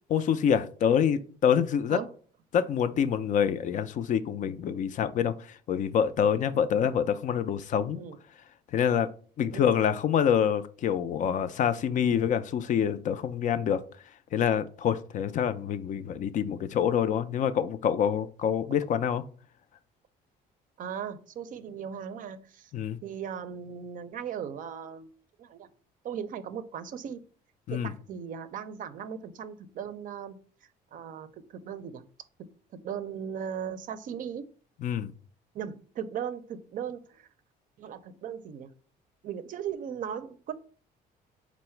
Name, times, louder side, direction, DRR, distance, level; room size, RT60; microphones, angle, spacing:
voice 1, 0.1-2.0 2.5-8.0 8.7-9.1 9.4-13.8 14.3-19.2 22.7-23.0 27.7-27.9 34.8-35.1, left 8 dB, 50° left, 0.4 m, -26 dB
voice 2, 20.8-22.7 23.0-25.1 25.4-25.7 26.0-27.2 27.7-32.0 32.4-34.5 35.5-37.3 37.8-38.7 39.2-40.5, right 8 dB, 55° right, 0.5 m, -38 dB
4.5 x 2.0 x 4.3 m
cardioid pair, 110°, 17 cm